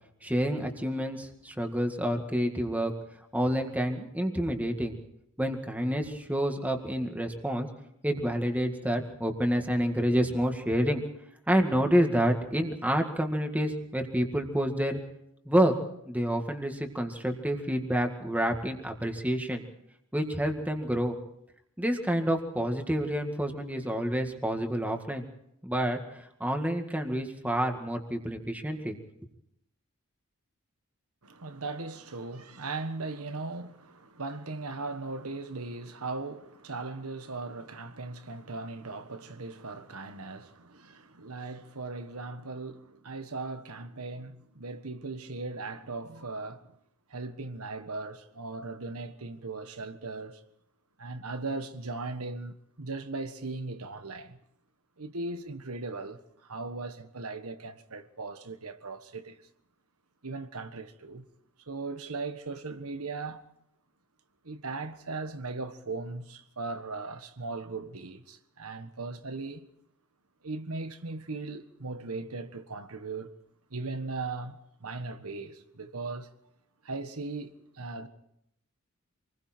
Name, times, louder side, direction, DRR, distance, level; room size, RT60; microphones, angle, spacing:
voice 1, 0.2-2.9 3.3-5.0 5.4-7.7 8.0-11.0 11.5-15.0 15.5-15.7 16.0-19.6 20.1-21.2 21.8-25.2 25.6-26.0 26.4-29.0, equal, 5° right, 2.0 m, -28 dB
voice 2, 31.2-46.7 47.1-50.4 51.0-54.4 55.0-59.4 60.2-61.3 61.6-63.5 64.4-69.6 70.4-73.3 73.7-76.3 76.8-78.1, right 3 dB, 75° right, 1.5 m, -38 dB
27.5 x 21.0 x 4.5 m
head